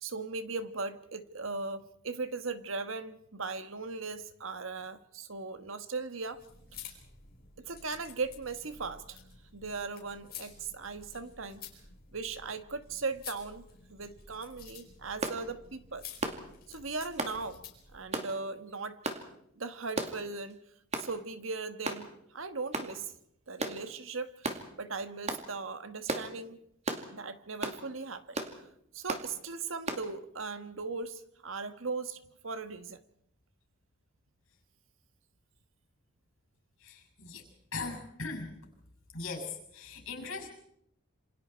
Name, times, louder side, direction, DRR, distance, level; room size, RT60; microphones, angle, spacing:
voice 1, 0.0-6.4 7.6-9.2 9.5-11.6 12.1-13.6 13.9-16.0 16.7-17.6 17.9-19.1 19.6-20.6 21.0-23.1 23.5-26.6 27.1-28.7 28.9-33.0, right 4 dB, 65° right, 10 dB, 1.5 m, -38 dB
sound 1, 6.3-18.0, left 7 dB, 45° left, 5.1 m, -51 dB
sound 2, 15.2-15.4 16.2-16.4 17.2-17.4 18.1-18.3 19.0-19.2 20.0-20.2 20.9-21.1 21.8-22.0 22.7-22.9 23.6-23.8 24.4-24.6 25.3-25.5 26.1-26.3 26.9-27.1 27.6-27.8 28.3-28.5 29.1-29.3 29.9-30.0, right 2 dB, 30° right, 2.4 m, -34 dB
voice 2, 36.8-37.4 37.7-38.6 39.1-40.5, left 4 dB, 70° left, 4 dB, 6.8 m, -39 dB
27.5 x 26.5 x 4.5 m, 0.75 s
head